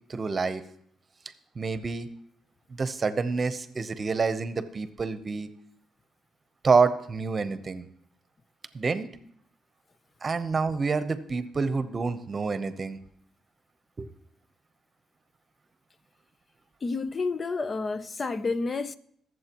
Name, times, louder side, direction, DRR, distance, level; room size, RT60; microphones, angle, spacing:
voice 1, 0.1-0.6 1.6-2.1 2.7-5.5 6.6-7.8 8.7-9.1 10.2-13.0 14.0-14.1, right 4 dB, 35° right, 0.9 m, -27 dB
voice 2, 16.8-18.9, left 3 dB, 35° left, 0.6 m, -30 dB
22.0 x 7.6 x 3.0 m
cardioid pair, 90°, 0 cm